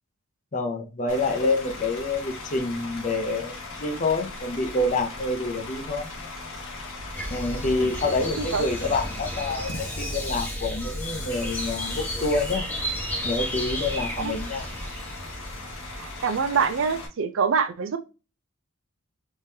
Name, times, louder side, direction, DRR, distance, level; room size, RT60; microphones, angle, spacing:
voice 1, 0.5-6.1 7.3-12.6 13.2-14.7, left 2 dB, 35° left, 3 dB, 0.7 m, -27 dB
Bus / Idling, 1.1-17.1, left 3 dB, 70° left, 0.9 m, -39 dB
sound 1, 7.1-16.6, equal, 10° left, 1.0 m, -33 dB
voice 2, 8.2-8.7 14.2-14.3 15.9-18.0, right 6 dB, 65° right, 9 dB, 0.5 m, -26 dB
3.6 x 3.1 x 2.8 m, 0.31 s
head